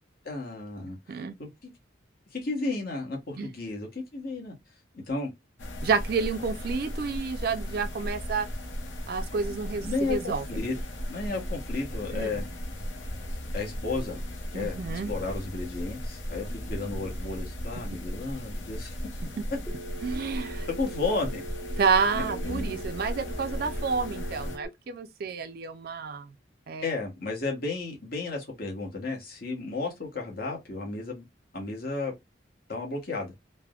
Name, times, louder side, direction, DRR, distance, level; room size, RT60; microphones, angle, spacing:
voice 1, 0.2-1.7 2.3-4.5 4.9-5.3 9.8-10.8 11.1-12.5 13.5-14.2 14.5-14.7 15.1-18.9 20.7-21.4 26.8-31.3 31.5-32.1 32.7-33.3, left 3 dB, 50° left, 1.0 m, -33 dB
sound 1, 5.6-24.6, equal, 70° left, 0.7 m, -36 dB
voice 2, 5.8-8.5 9.1-10.4 12.1-12.3 14.5-15.1 20.0-20.7 21.8-26.3 26.7-26.9, right 5 dB, 50° right, 0.4 m, -29 dB
Telephone, 19.7-24.7, right 2 dB, 25° left, 0.7 m, -42 dB
3.3 x 2.0 x 2.3 m
head